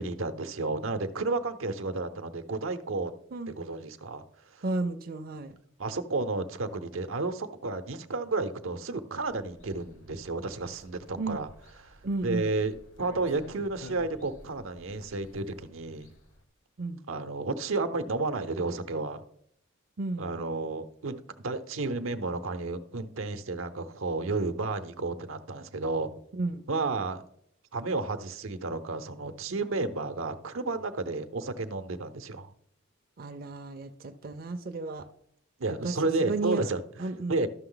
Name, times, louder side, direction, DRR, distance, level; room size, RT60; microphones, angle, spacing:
voice 1, 0.0-3.1 3.5-4.2 4.5-4.6 5.8-11.5 11.9-12.0 12.2-16.1 17.1-19.2 20.2-26.1 26.7-27.2 27.7-32.5 35.6-36.8 37.3-37.5, right 3 dB, 85° right, 9 dB, 0.7 m, -32 dB
voice 2, 4.6-5.5 11.2-11.4 12.0-12.5 16.8-17.0 20.0-20.3 26.3-26.7 33.2-35.1 35.7-36.7 37.0-37.4, right 3 dB, 45° right, 6 dB, 0.5 m, -33 dB
sound 1, 9.2-16.4, left 1 dB, 70° left, 1.3 m, -52 dB
12.5 x 6.2 x 3.9 m, 0.70 s
head